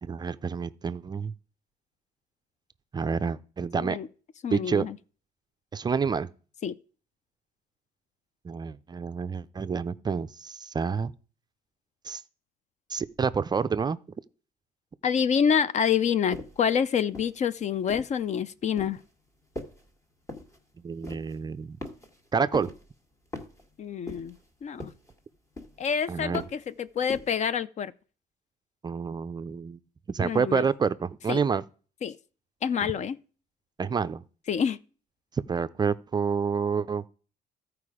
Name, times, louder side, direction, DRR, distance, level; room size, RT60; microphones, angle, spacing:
voice 1, 0.0-1.3 2.9-4.0 4.5-4.9 5.7-6.3 8.4-11.1 12.1-12.2 12.9-14.0 20.8-21.8 22.3-22.7 26.1-26.4 28.8-29.8 30.1-31.6 32.8-32.9 33.8-34.2 35.5-37.1, right 5 dB, 25° right, 0.4 m, -28 dB
voice 2, 4.4-5.0 6.6-6.7 15.0-19.0 23.8-24.3 24.6-24.9 25.8-27.9 30.2-30.7 31.3-31.4 32.0-32.2 32.6-33.2 34.5-34.8, left 7 dB, 45° left, 0.5 m, -27 dB
sound 1, 16.3-16.7 17.1-18.2 18.8-19.1 19.6-19.9 20.3-20.6 21.0-21.4 21.8-22.3 22.5-22.9 23.3-23.7 24.1-24.5 24.8-25.2 25.6-25.9 26.3-26.7 27.1-27.4, left 2 dB, 20° left, 1.6 m, -40 dB
13.5 x 4.8 x 4.9 m
cardioid pair, 110°, 17 cm